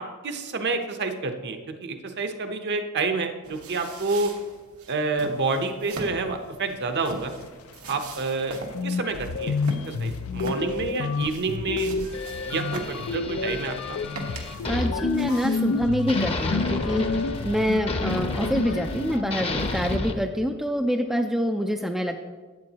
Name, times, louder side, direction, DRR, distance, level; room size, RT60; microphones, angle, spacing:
voice 1, 0.0-4.3 4.9-7.3 7.9-8.6 8.8-9.6 9.9-11.9 12.4-14.0, right 3 dB, 55° right, 6 dB, 0.8 m, -28 dB
sound 1, 3.4-15.8, right 2 dB, 85° right, 1.3 m, -41 dB
sound 2, 8.4-8.5 8.7-20.0, left 4 dB, 70° left, 0.4 m, -29 dB
sound 3, 12.1-15.8 16.1-20.1, left 2 dB, 25° left, 0.7 m, -33 dB
voice 2, 14.7-22.2, equal, ahead, 3 dB, 0.3 m, -26 dB
12.0 x 8.3 x 2.9 m, 1.4 s
head